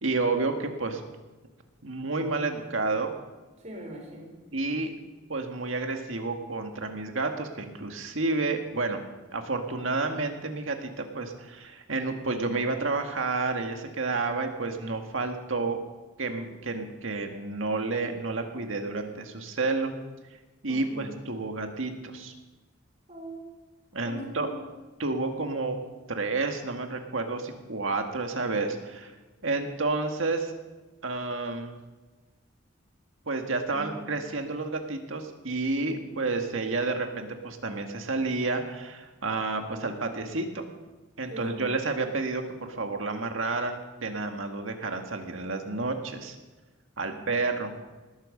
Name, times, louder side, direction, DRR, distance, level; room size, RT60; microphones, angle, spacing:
voice 1, 0.0-1.0 1.8-3.1 4.5-4.9 5.3-9.0 9.3-15.8 16.2-19.9 20.6-22.3 23.9-24.5 25.0-25.8 26.1-29.1 29.4-30.5 31.0-31.8 33.3-40.7 41.2-46.4 47.0-47.7, right 3 dB, 80° right, 4 dB, 1.8 m, -30 dB
voice 2, 3.6-4.3 20.7-21.1 23.1-23.5 24.0-24.6 33.7-34.0 41.3-41.7 47.0-47.3, equal, 35° right, 1 dB, 4.0 m, -41 dB
19.5 x 9.1 x 6.6 m, 1.2 s
head